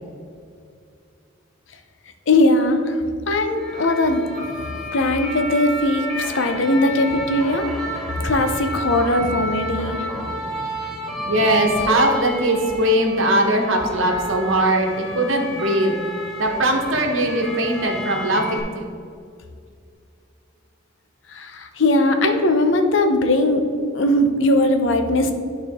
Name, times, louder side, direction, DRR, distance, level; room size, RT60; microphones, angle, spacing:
voice 1, 2.3-3.0 3.3-4.5 4.9-7.7 8.2-10.1 21.3-23.7 23.9-25.3, left 1 dB, 70° left, 6 dB, 0.7 m, -19 dB
sound 1, 3.5-18.6, equal, ahead, 1.3 m, -31 dB
voice 2, 11.2-15.9 16.4-18.9, right 1 dB, 75° right, 2 dB, 1.1 m, -20 dB
11.0 x 4.4 x 3.6 m, 2.4 s
head